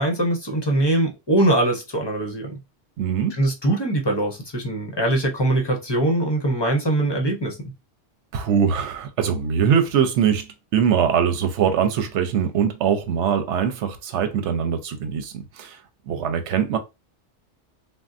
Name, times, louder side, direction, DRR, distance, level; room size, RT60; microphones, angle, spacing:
voice 1, 0.0-2.6 3.4-7.7, right 1 dB, 30° left, 0.6 m, -22 dB
voice 2, 3.0-3.4 8.3-15.8 16.1-16.8, right 8 dB, 85° right, 0.9 m, -22 dB
3.5 x 2.1 x 2.5 m
omnidirectional pair, 1.2 m